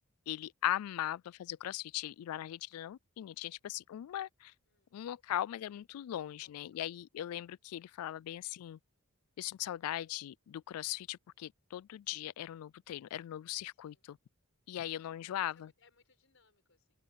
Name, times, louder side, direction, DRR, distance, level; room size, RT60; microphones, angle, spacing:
voice 1, 0.3-4.5 4.9-8.8 9.4-14.2 14.7-15.7, left 12 dB, 90° left, 0.3 m, -39 dB
voice 2, 6.2-6.8 13.7-14.1 14.9-16.9, left 3 dB, 60° left, 6.4 m, -69 dB
head